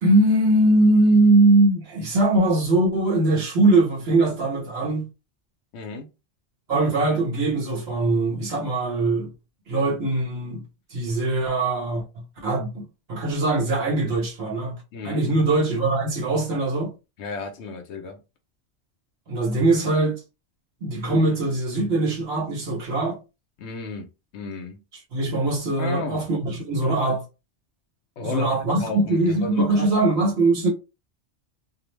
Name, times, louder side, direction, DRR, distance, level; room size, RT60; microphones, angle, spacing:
voice 1, 0.0-5.0 6.7-9.3 9.7-10.6 10.9-12.0 12.4-12.8 13.1-14.8 15.0-16.9 19.3-20.2 20.8-23.2 25.1-27.2 28.2-30.7, right 2 dB, 60° right, 1.2 m, -21 dB
voice 2, 5.7-6.1 14.9-15.3 17.2-18.2 23.6-24.1 24.3-24.8 25.8-26.3 28.2-28.5 28.8-29.9, left 4 dB, 75° left, 0.9 m, -33 dB
2.5 x 2.0 x 3.1 m
omnidirectional pair, 1.2 m